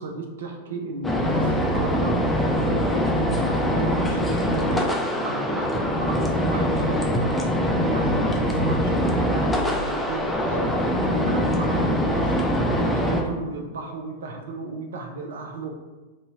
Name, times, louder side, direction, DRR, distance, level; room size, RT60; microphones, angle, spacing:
voice 1, 0.0-2.2 3.7-15.7, right 2 dB, 65° right, 2 dB, 0.5 m, -34 dB
sound 1, 1.0-13.2, equal, 10° left, 0.4 m, -23 dB
sound 2, 10.4-10.6, equal, 15° right, 1.1 m, -39 dB
2.7 x 2.7 x 3.5 m, 1.2 s
figure-of-eight pair, 90°, 0 cm